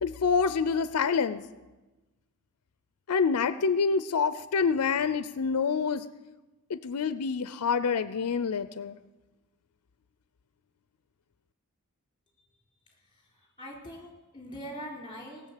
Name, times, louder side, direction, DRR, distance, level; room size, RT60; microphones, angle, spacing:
voice 1, 0.0-1.4 3.1-6.1 6.7-9.0, left 5 dB, 85° left, 14 dB, 0.5 m, -27 dB
voice 2, 12.9-15.5, equal, 20° left, -1 dB, 4.0 m, -43 dB
18.5 x 7.0 x 8.2 m, 1.1 s
head